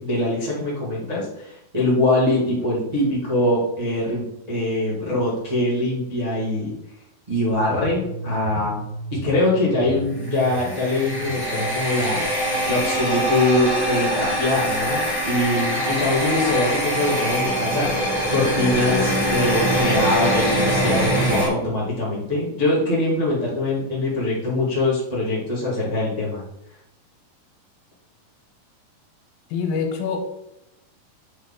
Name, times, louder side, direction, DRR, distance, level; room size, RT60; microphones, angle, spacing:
voice 1, 0.0-6.7 7.3-8.8 9.1-12.2 12.7-26.4, left 1 dB, 30° right, -7 dB, 0.7 m, -23 dB
sound 1, 7.5-13.5, right 2 dB, 65° left, 2.0 m, -36 dB
sound 2, 10.2-21.5, equal, 10° right, 1.1 m, -23 dB
voice 2, 29.5-30.2, left 6 dB, 80° left, 4 dB, 2.7 m, -25 dB
7.3 x 4.2 x 3.7 m, 0.85 s
omnidirectional pair, 4.1 m